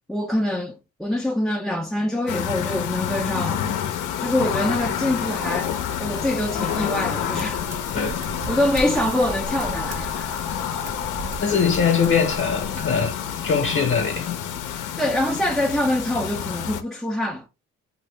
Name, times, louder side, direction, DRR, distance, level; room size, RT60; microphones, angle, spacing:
voice 1, 0.1-3.8 4.2-7.6 8.5-10.3 15.0-17.5, left 1 dB, ahead, 0.4 m, -25 dB
sound 1, 2.3-16.8, left 9 dB, 85° left, 0.6 m, -28 dB
sound 2, 4.7-12.8, right 2 dB, 60° right, 1.4 m, -38 dB
voice 2, 7.9-8.2 11.4-13.1 13.4-14.4 14.7-14.8, left 6 dB, 45° left, 0.8 m, -22 dB
2.7 x 2.6 x 3.2 m
cardioid pair, 90°, 30 cm